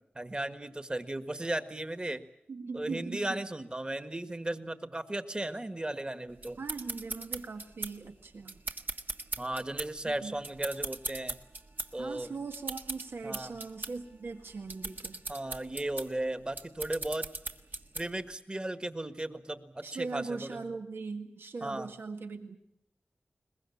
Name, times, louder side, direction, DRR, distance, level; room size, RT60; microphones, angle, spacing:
voice 1, 0.1-2.2 2.7-6.6 9.4-11.4 11.9-12.3 13.2-13.6 15.3-17.3 17.9-20.7 21.6-21.9, right 1 dB, 25° right, 10 dB, 1.6 m, -36 dB
voice 2, 2.5-3.4 6.6-8.6 10.0-10.3 12.0-15.2 19.8-22.6, right 4 dB, 85° right, 5 dB, 1.9 m, -40 dB
sound 1, 6.4-18.3, right 3 dB, 55° right, 1.5 m, -40 dB
22.0 x 21.0 x 8.6 m, 0.77 s
wide cardioid pair, 80°, 4 cm